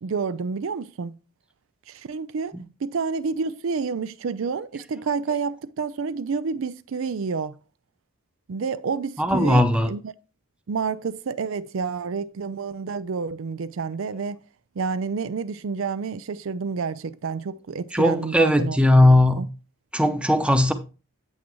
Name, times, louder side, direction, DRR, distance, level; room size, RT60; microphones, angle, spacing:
voice 1, 0.0-1.2 1.9-7.6 8.5-10.1 10.7-14.4 14.8-19.5, right 5 dB, 70° right, 0.4 m, -29 dB
voice 2, 9.2-9.9 17.9-19.4 19.9-20.7, left 1 dB, 5° right, 0.7 m, -18 dB
8.4 x 8.3 x 3.1 m
head